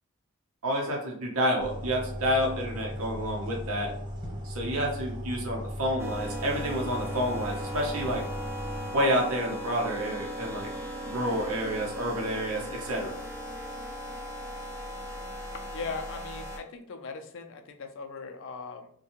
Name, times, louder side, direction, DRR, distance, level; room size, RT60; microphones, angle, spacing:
voice 1, 0.6-3.9 4.4-8.3 8.9-10.7 11.1-13.2, equal, 80° right, -1 dB, 0.7 m, -29 dB
sound 1, 1.6-8.8, equal, 40° right, 1.1 m, -37 dB
sound 2, 6.0-16.6, equal, 10° right, 0.5 m, -38 dB
voice 2, 15.7-18.9, left 4 dB, 65° left, 5 dB, 0.4 m, -39 dB
2.6 x 2.2 x 2.8 m, 0.65 s
head